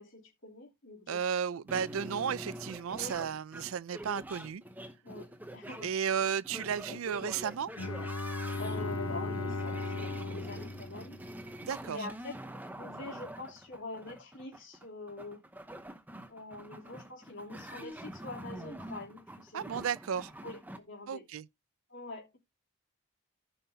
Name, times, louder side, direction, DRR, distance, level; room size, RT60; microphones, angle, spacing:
voice 1, 0.0-1.2 2.9-3.1 5.0-5.9 6.9-7.0 8.4-11.2 11.9-15.4 16.3-19.6 20.4-21.3 21.9-22.4, left 2 dB, 60° left, 3.2 m, -45 dB
voice 2, 1.1-4.6 5.8-7.7 11.6-12.1 19.5-20.3 21.1-21.5, right 7 dB, 80° right, 0.4 m, -33 dB
sound 1, 1.7-20.8, right 1 dB, 10° right, 0.8 m, -45 dB
Bowed string instrument, 7.8-11.7, left 3 dB, 90° left, 1.1 m, -37 dB
14.5 x 5.7 x 2.8 m
head